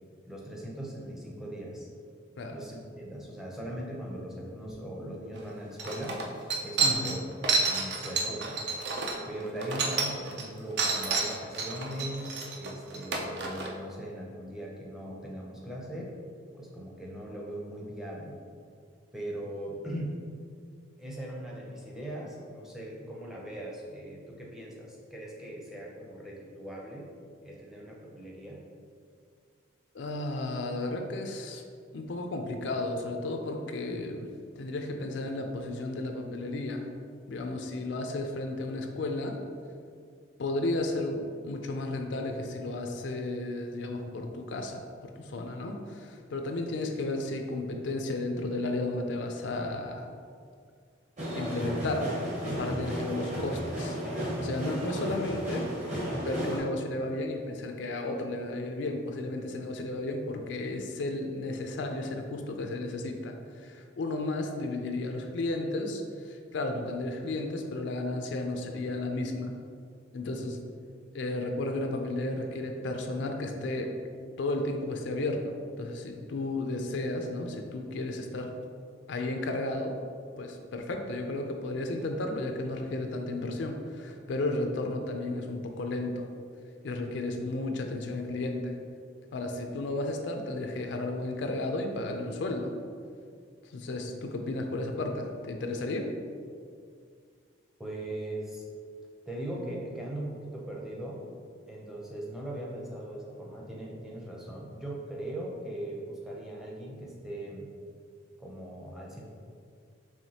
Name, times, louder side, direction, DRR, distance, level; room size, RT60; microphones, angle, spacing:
voice 1, 0.3-1.9 2.5-6.2 6.6-7.2 7.7-8.6 9.3-16.1 16.5-18.4 19.1-20.2 21.0-27.1 27.4-28.6 97.8-98.6 99.3-101.2 101.7-107.7 108.4-109.3, right 1 dB, ahead, -3 dB, 0.5 m, -39 dB
sound 1, 5.4-5.5 5.8-10.5 10.8-13.7, right 4 dB, 60° right, 0.5 m, -29 dB
voice 2, 6.8-7.2 29.9-31.6 31.9-34.3 34.6-36.9 37.3-39.4 40.4-50.1 51.3-52.1 52.4-54.0 54.4-55.7 56.2-69.5 70.1-70.6 71.1-73.9 74.4-78.5 79.1-80.0 80.4-86.3 86.8-88.8 89.3-92.7 93.7-96.1, left 2 dB, 70° left, 4 dB, 0.4 m, -33 dB
sound 2, 51.2-56.6, equal, 40° right, 1.0 m, -33 dB
4.9 x 3.2 x 2.8 m, 2.2 s
head